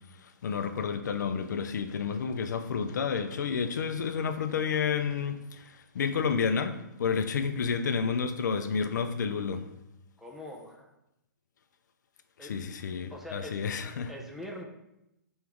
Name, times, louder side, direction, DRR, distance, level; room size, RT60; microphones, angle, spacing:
voice 1, 0.2-9.7 12.4-14.1, left 6 dB, 70° left, 0.4 m, -30 dB
voice 2, 10.2-10.9 12.4-12.5 13.1-13.6 14.1-14.6, left 1 dB, 5° right, 0.4 m, -42 dB
3.4 x 3.1 x 3.5 m
hypercardioid pair, 135°, 10 cm